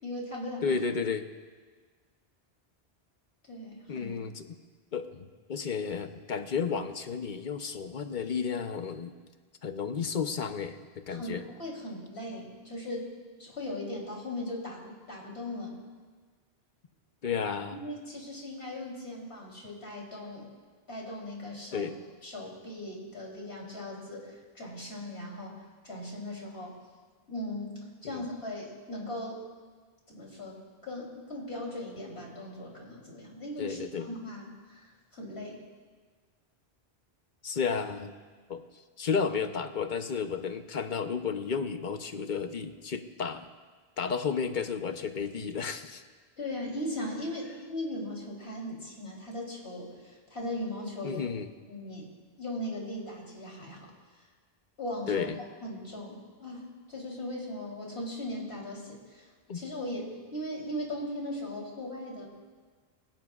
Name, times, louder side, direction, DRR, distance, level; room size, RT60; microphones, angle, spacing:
voice 1, 0.0-0.8 3.5-4.1 11.1-13.1 13.4-15.8 17.7-20.5 20.9-21.9 22.2-26.8 27.3-29.4 30.1-35.6 46.4-51.2 51.7-53.9 54.8-55.3 55.6-62.2, left 1 dB, 80° left, -3 dB, 3.8 m, -38 dB
voice 2, 0.6-1.2 3.9-4.4 4.9-9.1 9.6-10.8 11.1-11.5 17.2-17.8 21.7-21.9 28.0-28.2 33.6-34.1 37.4-38.1 38.5-38.6 39.0-43.5 44.0-46.0 51.0-51.5 55.1-55.4 59.5-59.6, left 6 dB, 50° left, 8 dB, 0.9 m, -32 dB
24.0 x 16.5 x 2.4 m, 1.5 s
omnidirectional pair, 1.1 m